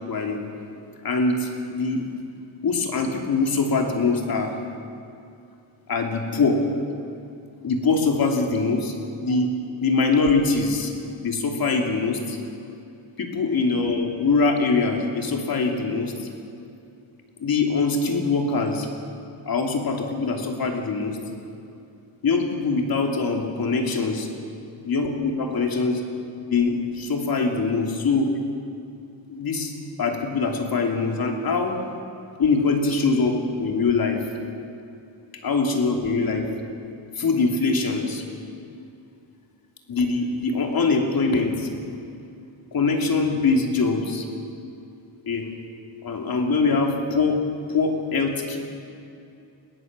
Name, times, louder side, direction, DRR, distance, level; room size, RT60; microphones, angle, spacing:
voice 1, 0.1-0.4 1.0-2.0 2.6-4.5 5.9-6.6 7.6-8.9 9.2-9.5 9.8-10.9 11.2-12.4 13.2-16.1 17.4-18.9 19.5-21.2 22.2-24.3 24.8-26.0 26.5-28.3 29.3-29.7 30.0-31.8 32.4-34.2 35.4-36.5 37.2-38.2 39.9-41.7 42.7-44.3 45.3-45.5 46.0-47.4 47.7-48.6, left 4 dB, 50° left, 2 dB, 3.0 m, -23 dB
22.5 x 17.5 x 7.6 m, 2.6 s
cardioid pair, 120°, 46 cm